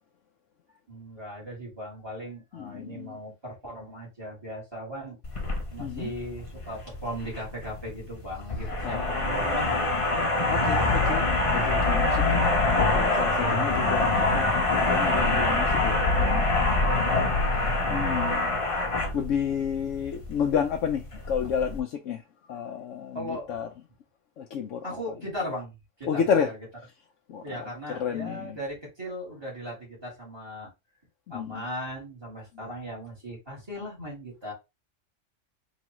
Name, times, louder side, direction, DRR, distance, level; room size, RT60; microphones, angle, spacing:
voice 1, 0.9-5.2 5.7-10.1 13.4-13.8 16.8-17.6 23.1-23.6 24.8-26.6 27.4-30.7 31.3-34.5, equal, 20° right, 2.8 m, -38 dB
voice 2, 2.5-3.2 5.8-6.1 8.8-9.8 10.5-16.5 17.9-18.6 19.1-22.2 22.5-23.7 24.4-24.9 26.0-26.5 27.3-27.7 28.0-28.6 31.3-31.6, left 7 dB, 90° left, 1.0 m, -31 dB
sound 1, 5.2-21.8, left 2 dB, 30° left, 0.9 m, -25 dB
4.8 x 3.1 x 3.0 m
omnidirectional pair, 1.3 m